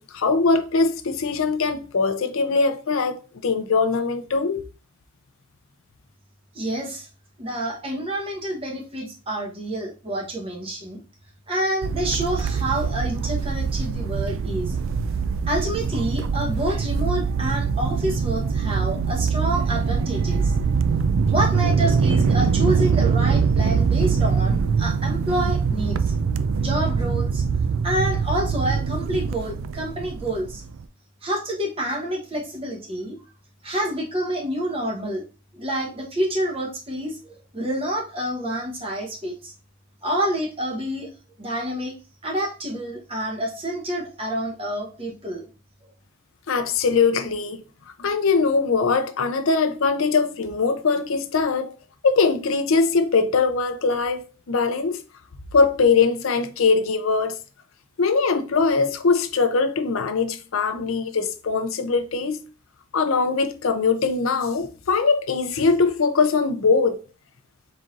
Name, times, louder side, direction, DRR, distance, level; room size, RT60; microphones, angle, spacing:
voice 1, 0.0-4.7 46.5-47.6 48.0-51.7 52.0-55.0 55.5-57.4 58.0-62.4 62.9-67.0, left 4 dB, 70° left, 0.5 m, -21 dB
voice 2, 6.5-7.1 7.4-11.0 11.5-14.8 15.5-20.5 21.3-26.1 26.6-27.4 27.8-30.6 31.2-33.2 33.6-35.2 35.5-39.5 40.0-41.1 41.4-41.9 42.2-45.5, right 1 dB, 25° right, 0.9 m, -28 dB
sound 1, 11.8-30.8, right 5 dB, 65° right, 0.3 m, -23 dB
4.2 x 3.9 x 2.4 m
head